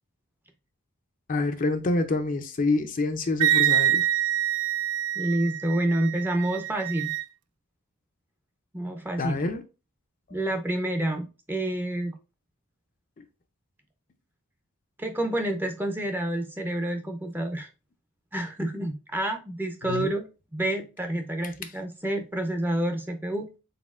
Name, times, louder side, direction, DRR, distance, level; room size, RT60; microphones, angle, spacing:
voice 1, 1.3-4.1 9.2-9.6 19.8-20.1, left 3 dB, 35° left, 0.5 m, -27 dB
Wind instrument woodwind instrument, 3.4-7.2, right 11 dB, 85° right, 0.3 m, -26 dB
voice 2, 5.1-7.1 8.7-9.4 10.3-12.2 15.0-17.7 18.3-20.2 20.5-23.5, right 1 dB, 10° right, 0.5 m, -28 dB
4.2 x 3.7 x 2.4 m
head